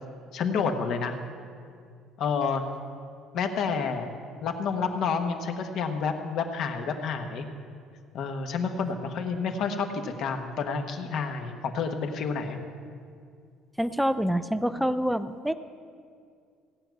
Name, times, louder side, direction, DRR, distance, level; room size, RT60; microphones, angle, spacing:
voice 1, 0.3-1.2 2.2-2.6 3.3-4.1 4.4-7.5 8.1-12.6, left 5 dB, 50° left, 5 dB, 1.1 m, -29 dB
voice 2, 13.8-15.5, equal, ahead, 12 dB, 0.4 m, -26 dB
16.5 x 5.9 x 9.2 m, 2.3 s
cardioid pair, 170°, 0 cm